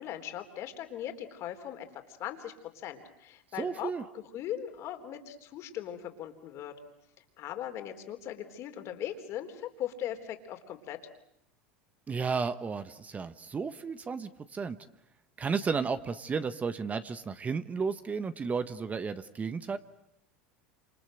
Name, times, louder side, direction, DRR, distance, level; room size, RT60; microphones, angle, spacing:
voice 1, 0.0-1.9 2.2-2.5 2.8-6.7 7.4-11.0, left 11 dB, 50° left, 7 dB, 3.8 m, -39 dB
voice 2, 3.6-4.0 12.1-14.8 15.4-19.8, right 5 dB, 25° right, 11 dB, 1.3 m, -33 dB
28.0 x 27.0 x 7.8 m, 0.78 s
hypercardioid pair, 95°, 6 cm